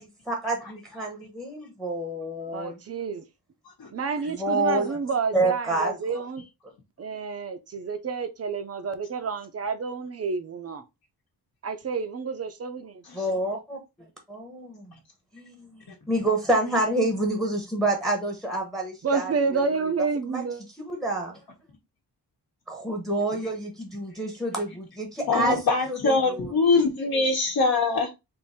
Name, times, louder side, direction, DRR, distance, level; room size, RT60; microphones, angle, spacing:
voice 1, 0.0-2.8 4.3-4.9 5.3-5.9 13.1-13.8 14.3-14.9 15.3-19.6 20.3-20.4 20.8-21.4 22.7-25.6 25.9-26.5, right 2 dB, ahead, 0.8 m, -28 dB
voice 2, 2.4-3.2 3.9-6.4 7.0-10.8 11.6-13.0 19.0-20.6, right 5 dB, 40° right, 0.5 m, -29 dB
voice 3, 25.3-28.1, left 3 dB, 60° left, 1.0 m, -23 dB
3.6 x 2.6 x 4.1 m
wide cardioid pair, 175°, 40 cm